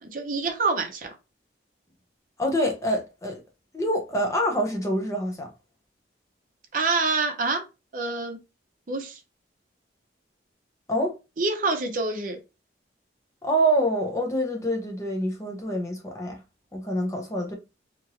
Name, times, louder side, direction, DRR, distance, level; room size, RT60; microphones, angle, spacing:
voice 1, 0.0-1.1 6.7-7.6 7.9-8.4 8.9-9.2 11.4-12.4, right 3 dB, 45° right, 0.6 m, -26 dB
voice 2, 2.4-3.4 3.7-5.5 10.9-11.2 13.4-16.4 16.7-17.5, equal, 15° left, 0.5 m, -26 dB
2.9 x 2.5 x 2.8 m
head